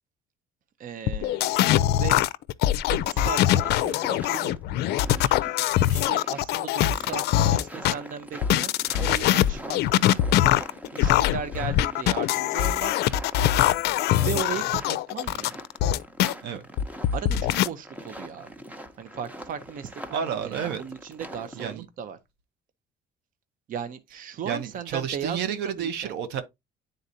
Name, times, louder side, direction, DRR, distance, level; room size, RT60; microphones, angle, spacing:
voice 1, 0.8-2.2 2.9-4.6 5.9-9.8 10.9-13.0 13.4-13.9 14.2-15.5 17.1-18.5 19.0-22.2 23.7-26.1, right 7 dB, 55° right, 0.7 m, -37 dB
sound 1, 1.1-7.9 8.4-16.3 16.8-17.7, left 13 dB, 75° left, 0.4 m, -23 dB
sound 2, 3.0-21.7, equal, 10° right, 0.8 m, -43 dB
voice 2, 20.1-20.8 21.5-21.9 24.4-26.4, right 8 dB, 90° right, 0.9 m, -30 dB
9.6 x 3.9 x 2.7 m
cardioid pair, 110°, 17 cm